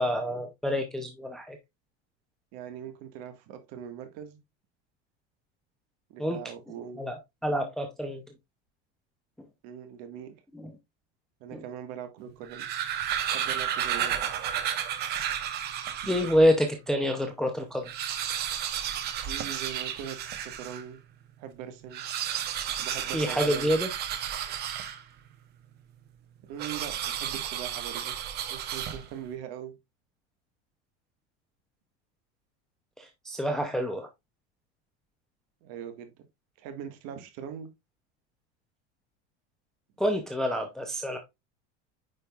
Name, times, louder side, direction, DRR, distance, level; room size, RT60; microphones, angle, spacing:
voice 1, 0.0-1.6 6.2-6.4 7.0-8.2 10.5-10.7 11.5-11.6 16.1-17.9 23.1-23.9 33.0-34.1 40.0-41.2, equal, ahead, 0.6 m, -27 dB
voice 2, 2.5-4.4 6.1-7.0 9.6-10.4 11.4-12.7 13.3-14.2 16.0-16.1 19.0-21.0 21.4-22.0 22.8-23.7 26.5-28.2 28.5-29.7 35.6-36.1 36.6-37.7, right 9 dB, 45° right, 1.7 m, -41 dB
sound 1, 12.3-16.5 17.0-17.1 17.3-17.4 17.7-20.9 21.8-25.3 26.6-29.3, right 9 dB, 30° right, 0.9 m, -32 dB
9.1 x 5.2 x 2.4 m
supercardioid pair, 170°, 34 cm